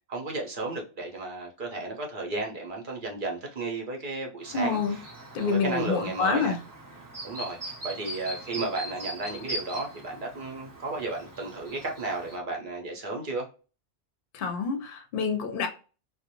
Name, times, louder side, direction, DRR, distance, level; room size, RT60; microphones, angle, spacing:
voice 1, 0.1-5.1 5.4-6.6 7.2-13.5, right 2 dB, 55° right, 0.8 m, -33 dB
Chirp tweet, 4.4-12.4, right 1 dB, 25° right, 0.6 m, -41 dB
voice 2, 4.5-5.0 5.3-6.6 14.3-15.7, left 5 dB, 65° left, 0.7 m, -27 dB
2.5 x 2.1 x 2.8 m
omnidirectional pair, 1.1 m